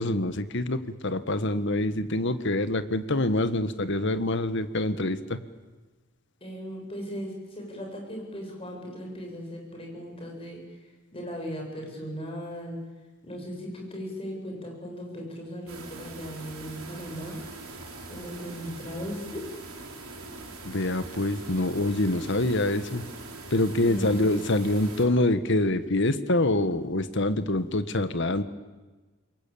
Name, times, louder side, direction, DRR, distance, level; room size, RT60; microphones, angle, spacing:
voice 1, 0.0-5.4 20.6-23.0 23.5-28.4, left 1 dB, 55° left, 11 dB, 1.5 m, -25 dB
voice 2, 6.4-10.8 11.1-12.8 13.2-17.4 18.1-19.4 23.8-24.3, equal, 25° left, 1 dB, 7.3 m, -37 dB
sound 1, 15.7-25.1, right 3 dB, 80° right, 6.2 m, -42 dB
28.0 x 23.0 x 8.7 m, 1.2 s
head